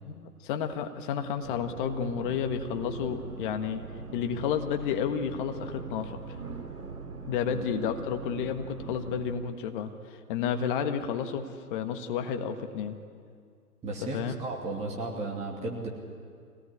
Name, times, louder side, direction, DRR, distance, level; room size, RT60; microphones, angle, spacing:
voice 1, 0.0-3.8 4.1-6.2 7.3-12.9 14.1-14.3, left 7 dB, 35° left, 7 dB, 1.5 m, -31 dB
sound 1, 1.4-9.4, right 4 dB, 75° right, 3.6 m, -41 dB
voice 2, 13.8-15.9, right 2 dB, 15° right, -1 dB, 2.6 m, -34 dB
24.5 x 18.5 x 9.8 m, 2.2 s
figure-of-eight pair, 125°, 47 cm